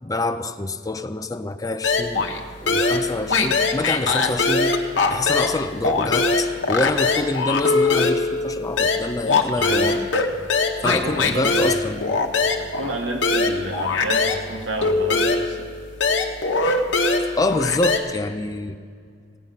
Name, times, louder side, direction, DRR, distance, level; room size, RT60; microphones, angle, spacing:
voice 1, 0.0-2.2 2.6-4.8 5.1-10.1 10.8-12.1 17.4-18.8, left 2 dB, 20° left, 9 dB, 0.4 m, -26 dB
sound 1, 1.8-2.4 2.7-5.6 5.8-14.4 14.8-18.0, left 3 dB, 70° left, 1.0 m, -21 dB
voice 2, 9.5-9.9 10.9-11.5 11.9-12.0 12.6-15.7, right 1 dB, 70° right, 1 dB, 1.5 m, -30 dB
16.5 x 5.5 x 9.1 m, 2.2 s
head